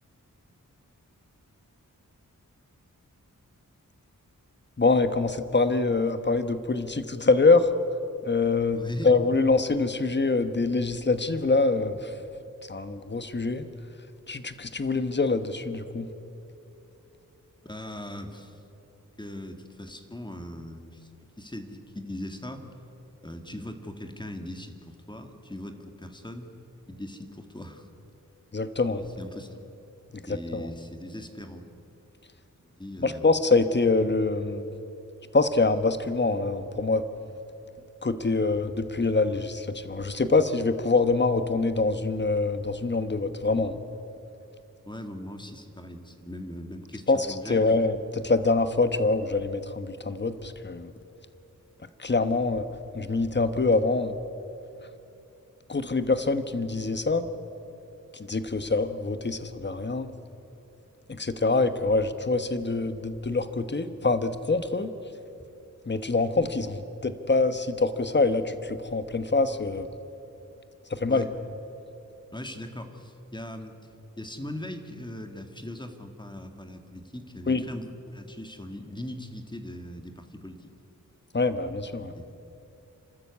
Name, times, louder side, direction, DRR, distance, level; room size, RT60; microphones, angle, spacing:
voice 1, 4.8-7.7 8.3-12.0 12.7-13.7 14.3-16.1 28.5-29.0 30.5-30.7 33.0-34.7 35.3-37.0 38.0-43.8 47.1-50.9 52.0-52.6 52.9-54.2 55.7-57.3 58.3-60.1 61.1-64.9 65.9-66.8 67.0-69.9 70.9-71.3 77.5-77.6 81.3-82.1, left 3 dB, 35° left, 11 dB, 1.1 m, -25 dB
voice 2, 8.7-9.2 17.6-18.6 19.2-21.1 21.4-22.7 23.2-26.5 26.9-27.9 29.2-29.6 30.3-31.8 32.4-33.4 44.8-47.8 71.1-71.3 72.3-73.8 74.2-80.7 82.1-82.3, left 1 dB, 15° left, 6 dB, 1.9 m, -40 dB
28.5 x 13.0 x 8.4 m, 2.9 s
wide cardioid pair, 85°, 32 cm